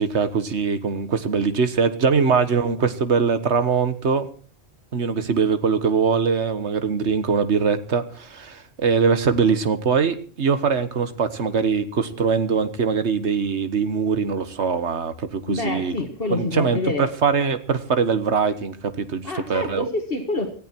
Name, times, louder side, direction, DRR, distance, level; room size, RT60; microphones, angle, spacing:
voice 1, 0.0-4.3 4.9-15.9 16.3-19.9, right 5 dB, 85° right, 11 dB, 1.7 m, -22 dB
voice 2, 15.5-17.1 19.2-20.5, left 2 dB, 60° left, 4 dB, 2.0 m, -27 dB
18.5 x 14.5 x 4.5 m, 0.41 s
omnidirectional pair, 1.1 m